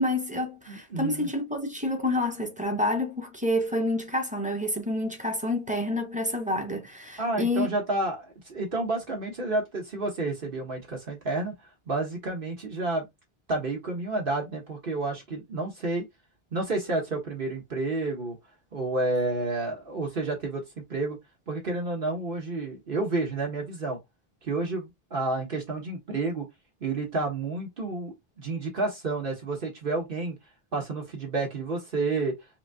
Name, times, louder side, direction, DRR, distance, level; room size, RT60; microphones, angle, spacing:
voice 1, 0.0-7.7, left 1 dB, 10° right, 1.0 m, -28 dB
voice 2, 0.7-1.3 7.2-11.5 11.9-13.1 13.5-16.1 16.5-18.4 18.7-21.2 21.5-24.0 24.4-26.5 26.8-30.4 30.7-32.3, right 2 dB, 60° right, 1.4 m, -30 dB
5.7 x 2.3 x 2.7 m
omnidirectional pair, 1.0 m